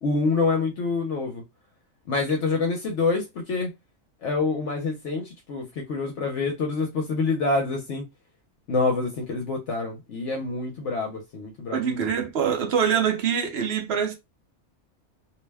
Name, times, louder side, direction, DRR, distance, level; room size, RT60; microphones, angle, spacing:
voice 1, 0.0-1.4 2.1-3.7 4.2-8.0 8.7-11.9, left 3 dB, 65° left, 1.0 m, -26 dB
voice 2, 11.7-14.2, right 7 dB, 60° right, 0.8 m, -24 dB
2.6 x 2.1 x 3.3 m
omnidirectional pair, 1.4 m